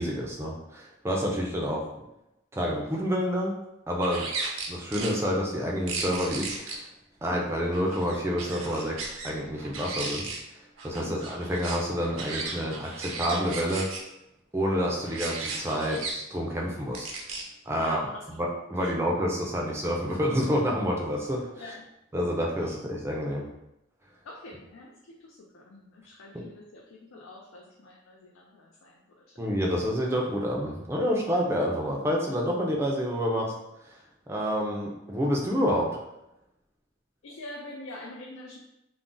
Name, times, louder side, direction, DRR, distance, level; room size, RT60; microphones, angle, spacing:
voice 1, 0.0-1.9 2.5-3.6 3.9-4.3 4.7-6.9 7.2-10.3 10.8-13.9 14.5-17.1 17.7-18.1 18.3-21.5 22.1-23.4 26.3-26.4 29.4-33.5 33.9-34.0 34.3-36.0, equal, 15° right, -2 dB, 0.4 m, -28 dB
sound 1, 4.0-5.1 5.9-6.7 7.7-9.3 9.6-10.4 10.8-14.0 15.0-16.1 16.9-17.4, right 4 dB, 85° right, 0.5 m, -35 dB
voice 2, 17.8-18.4 18.8-18.9 21.6-21.9 24.2-29.2 37.2-38.6, left 1 dB, 90° left, -2 dB, 0.4 m, -45 dB
2.5 x 2.0 x 3.6 m, 0.88 s
head